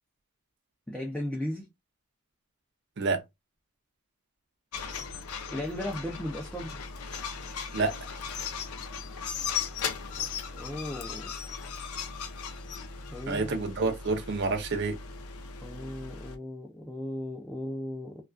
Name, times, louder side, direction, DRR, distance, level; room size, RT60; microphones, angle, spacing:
voice 1, 0.9-1.7 5.5-6.8 10.5-11.3 13.1-13.6 15.6-18.2, left 1 dB, 5° left, 0.3 m, -36 dB
sound 1, 4.7-16.4, left 6 dB, 80° left, 0.5 m, -37 dB
voice 2, 13.3-15.0, right 3 dB, 50° right, 0.5 m, -28 dB
2.3 x 2.2 x 2.3 m
head